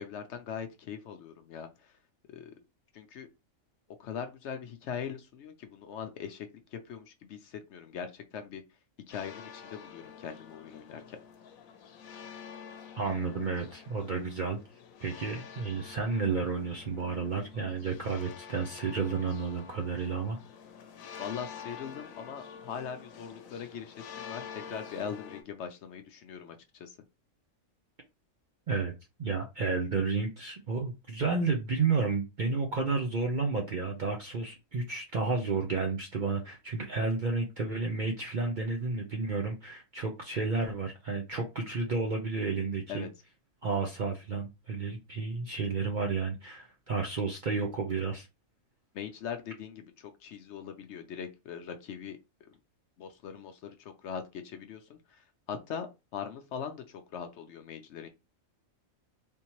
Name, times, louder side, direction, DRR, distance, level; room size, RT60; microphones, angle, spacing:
voice 1, 0.0-1.9 2.3-2.5 2.9-3.3 4.0-8.6 9.1-11.2 21.2-27.0 42.9-43.1 48.9-52.5 53.0-55.9 56.1-58.1, left 7 dB, 65° left, 0.8 m, -41 dB
sound 1, 9.1-25.4, left 7 dB, 85° left, 1.1 m, -48 dB
voice 2, 12.9-14.6 15.0-20.4 28.7-28.9 29.2-43.1 43.6-48.3, right 4 dB, 55° right, 0.5 m, -31 dB
3.5 x 2.8 x 2.9 m
omnidirectional pair, 1.4 m